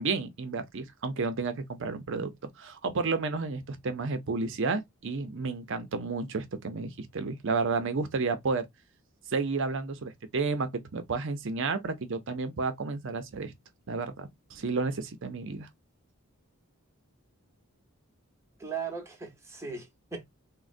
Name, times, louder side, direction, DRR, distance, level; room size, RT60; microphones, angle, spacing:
voice 1, 0.0-2.3 2.6-8.7 9.3-13.5 13.9-15.7, right 4 dB, 60° right, 0.6 m, -31 dB
voice 2, 18.6-20.2, right 5 dB, 15° right, 0.9 m, -38 dB
3.7 x 2.1 x 2.5 m
head